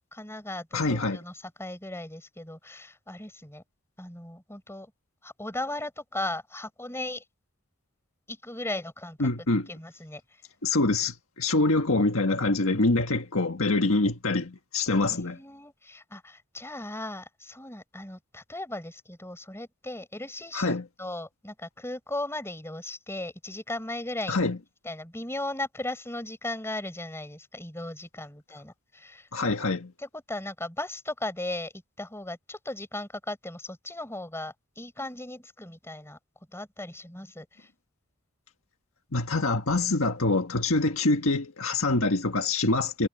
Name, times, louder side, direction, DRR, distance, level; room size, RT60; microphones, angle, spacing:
voice 1, 0.1-3.6 4.0-4.9 5.2-7.2 8.3-9.3 9.7-10.2 15.1-24.4 24.8-29.3 30.0-31.7 32.0-36.2 36.5-37.7, left 1 dB, 10° left, 4.9 m, -37 dB
voice 2, 0.7-1.2 9.2-9.7 10.6-15.4 20.5-20.9 24.3-24.6 29.3-29.9 39.1-43.1, left 2 dB, 65° left, 1.7 m, -25 dB
head